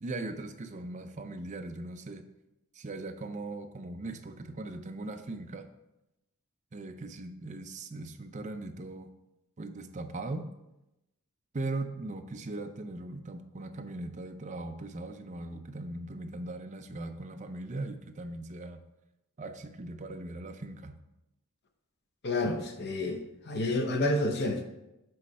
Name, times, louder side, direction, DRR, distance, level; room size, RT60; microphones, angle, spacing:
voice 1, 0.0-2.2 2.7-5.7 6.7-9.1 9.6-10.5 11.5-18.8 19.4-21.0 22.4-22.6, right 2 dB, 35° right, 6 dB, 0.5 m, -39 dB
voice 2, 22.2-24.6, left 2 dB, 50° left, 4 dB, 0.8 m, -29 dB
7.7 x 3.2 x 5.3 m, 0.92 s
head